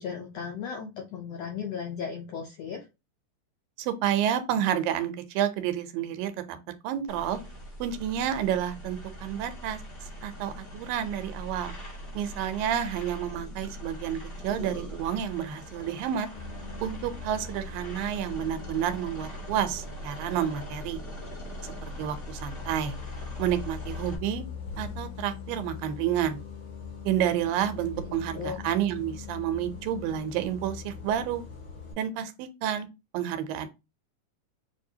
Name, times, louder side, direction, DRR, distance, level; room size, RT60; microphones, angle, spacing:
voice 1, 0.0-2.9 28.1-28.6, left 6 dB, 80° left, 1.4 m, -36 dB
voice 2, 3.8-6.6 6.8-7.4 7.8-9.8 10.2-11.7 12.1-16.3 16.8-21.0 22.0-23.0 23.4-24.4 24.8-26.4 27.0-31.4 32.0-32.9 33.1-33.7, right 10 dB, 90° right, 2.4 m, -30 dB
sound 1, 7.1-24.2, equal, 40° left, 0.8 m, -41 dB
Bus, 16.3-31.9, left 6 dB, 60° left, 4.0 m, -42 dB
7.1 x 2.6 x 2.8 m
omnidirectional pair, 3.9 m